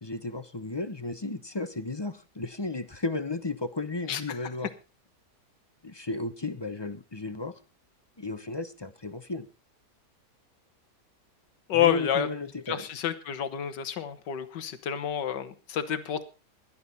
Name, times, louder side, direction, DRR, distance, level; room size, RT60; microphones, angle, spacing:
voice 1, 0.0-4.7 5.8-7.5 8.2-9.5 11.7-12.9, left 2 dB, 25° left, 11 dB, 0.6 m, -34 dB
voice 2, 11.7-12.3 12.7-16.2, left 10 dB, 85° left, 11 dB, 1.9 m, -29 dB
17.0 x 11.5 x 4.1 m, 0.31 s
omnidirectional pair, 1.8 m